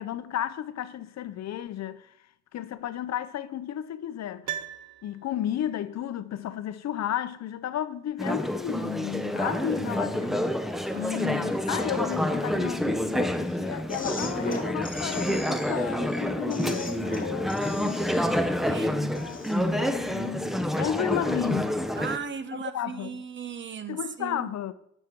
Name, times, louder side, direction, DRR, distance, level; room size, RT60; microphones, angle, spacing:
voice 1, 0.0-2.1 2.5-4.5 5.0-10.6 10.9-18.0 19.1-21.7 22.5-23.2 23.9-24.7, left 11 dB, 60° left, 0.7 m, -33 dB
Piano, 4.4-5.7 6.0-6.1, right 10 dB, 70° right, 0.8 m, -38 dB
Conversation / Chatter, 8.2-22.2, equal, ahead, 0.7 m, -28 dB
voice 2, 10.9-11.4 11.8-11.9 18.6-19.2 22.0-24.5, right 6 dB, 40° right, 0.9 m, -37 dB
sound 1, 13.9-19.9, left 2 dB, 30° left, 1.9 m, -38 dB
9.4 x 6.0 x 5.2 m
cardioid pair, 90°, 30 cm